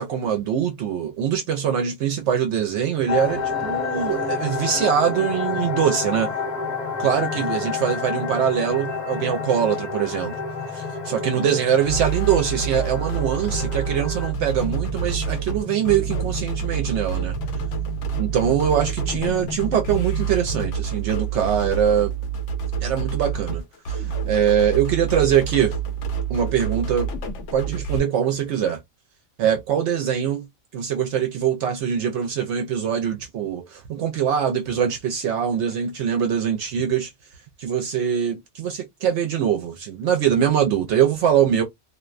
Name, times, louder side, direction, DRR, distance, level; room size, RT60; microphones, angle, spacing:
voice 1, 0.0-6.3 7.0-10.3 10.7-17.3 18.2-22.1 22.8-23.6 23.9-25.7 26.3-27.1 27.5-28.8 29.4-30.5 30.7-37.1 37.6-41.6, right 8 dB, 75° right, 0.8 m, -23 dB
sound 1, 3.1-14.3, left 5 dB, 45° left, 0.7 m, -30 dB
sound 2, 3.1-20.7, left 6 dB, ahead, 0.9 m, -36 dB
sound 3, 11.8-28.0, right 7 dB, 80° left, 0.9 m, -28 dB
2.5 x 2.1 x 2.3 m
omnidirectional pair, 1.2 m